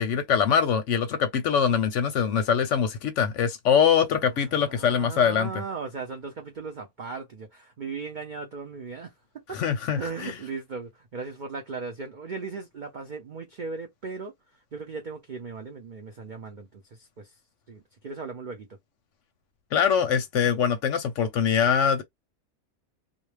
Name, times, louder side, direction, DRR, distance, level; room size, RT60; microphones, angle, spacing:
voice 1, 0.0-5.5 9.5-10.4 19.7-22.0, left 7 dB, 70° left, 0.8 m, -23 dB
voice 2, 4.4-9.1 9.5-9.6 10.0-14.3 14.7-17.3 17.7-18.8, right 4 dB, 70° right, 0.4 m, -37 dB
2.5 x 2.1 x 3.2 m
omnidirectional pair, 1.5 m